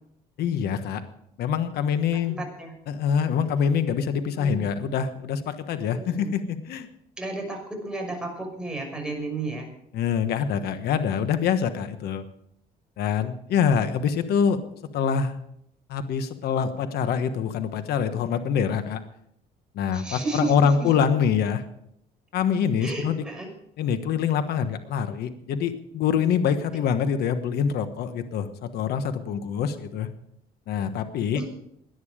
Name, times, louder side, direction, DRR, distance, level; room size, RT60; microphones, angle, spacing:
voice 1, 0.4-1.0 1.4-2.4 2.9-6.9 9.9-12.2 13.0-14.6 14.9-15.3 15.9-19.0 19.7-21.6 22.3-23.2 23.8-30.1 30.7-31.4, left 7 dB, 70° left, 10 dB, 1.3 m, -25 dB
voice 2, 2.1-2.7 4.3-4.8 5.9-6.4 7.2-9.7 19.9-20.9 22.8-23.5 31.3-31.4, right 2 dB, 5° right, 1 dB, 5.9 m, -33 dB
17.5 x 11.0 x 5.0 m, 0.73 s
cardioid pair, 110°, 17 cm